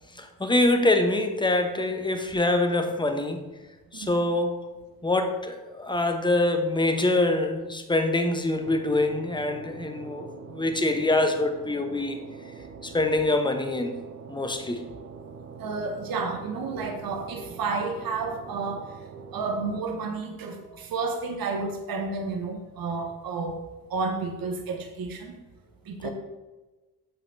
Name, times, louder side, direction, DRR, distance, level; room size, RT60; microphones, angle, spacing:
voice 1, 0.1-3.4 3.9-4.6 5.0-12.2 12.8-14.0 14.3-14.9 26.0-26.1, left 2 dB, 10° left, 5 dB, 0.9 m, -25 dB
sound 1, 8.6-19.8, right 5 dB, 30° right, 0.7 m, -44 dB
voice 2, 15.6-18.9 19.3-23.6 23.9-25.3 25.8-26.1, right 4 dB, 50° right, 4 dB, 1.0 m, -31 dB
6.9 x 5.6 x 2.7 m, 1.2 s
hypercardioid pair, 45°, 46 cm